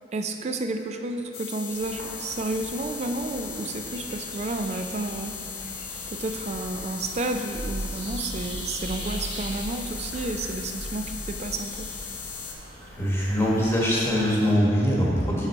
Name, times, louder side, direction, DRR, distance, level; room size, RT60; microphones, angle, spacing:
voice 1, 0.1-5.3 6.1-11.9, right 2 dB, 40° right, 5 dB, 0.4 m, -31 dB
sound 1, 1.3-12.5, left 6 dB, 75° left, 0.8 m, -38 dB
sound 2, 1.7-14.5, right 1 dB, 70° right, 1.0 m, -39 dB
voice 2, 12.9-15.5, equal, 15° left, -6 dB, 1.2 m, -23 dB
7.9 x 4.0 x 4.2 m, 2.6 s
head